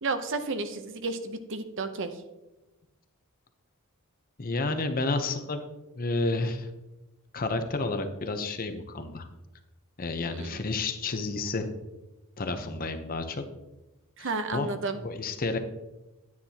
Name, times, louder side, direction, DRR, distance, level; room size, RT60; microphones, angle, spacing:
voice 1, 0.0-2.2 10.3-10.6 14.2-15.0, right 3 dB, 55° right, 9 dB, 0.7 m, -32 dB
voice 2, 4.4-5.6 5.9-6.7 7.3-9.3 10.0-11.7 12.4-13.4 14.2-14.7 15.0-15.6, left 3 dB, 40° left, 7 dB, 0.8 m, -30 dB
9.6 x 9.6 x 2.9 m, 1.0 s
head